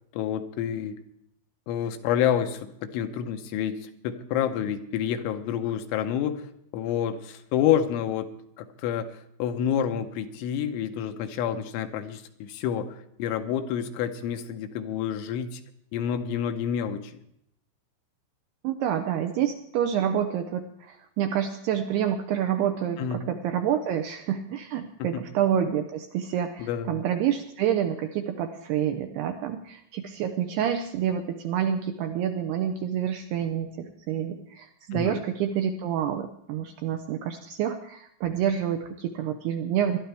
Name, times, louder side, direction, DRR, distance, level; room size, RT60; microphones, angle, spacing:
voice 1, 0.1-1.0 1.7-6.5 6.7-8.3 8.6-9.1 9.4-15.6 15.9-17.1 23.0-23.3 25.0-25.3 26.6-27.0 34.9-35.2, left 9 dB, 85° left, 7 dB, 3.3 m, -28 dB
voice 2, 18.6-40.0, right 9 dB, 80° right, 6 dB, 2.3 m, -28 dB
21.0 x 12.0 x 3.4 m, 0.74 s
omnidirectional pair, 5.4 m